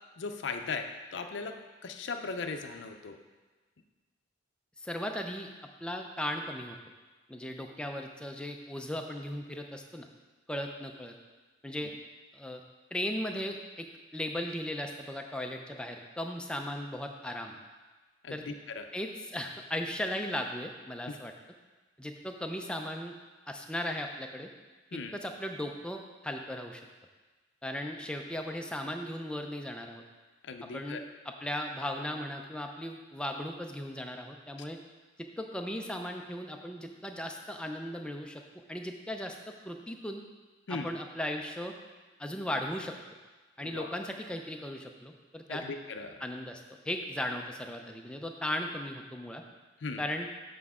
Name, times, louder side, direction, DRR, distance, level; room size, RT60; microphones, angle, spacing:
voice 1, 0.2-1.6 1.8-3.2 18.2-18.9 21.1-21.2 24.9-25.1 30.4-31.0 40.7-40.9 43.6-44.0 45.5-46.1 49.8-50.0, left 4 dB, 65° left, 6 dB, 0.5 m, -38 dB
voice 2, 4.8-5.5 5.8-6.8 7.3-10.1 10.5-11.2 11.6-11.9 12.3-12.6 12.9-13.9 14.1-17.6 18.3-18.4 18.9-21.3 22.0-23.1 23.5-24.5 24.9-26.8 27.6-30.0 30.6-34.8 35.2-38.4 38.7-40.2 40.7-41.7 42.2-42.9 43.6-45.6 46.2-49.4 50.0-50.3, left 1 dB, 5° left, 3 dB, 0.5 m, -37 dB
8.1 x 5.2 x 3.6 m, 1.3 s
head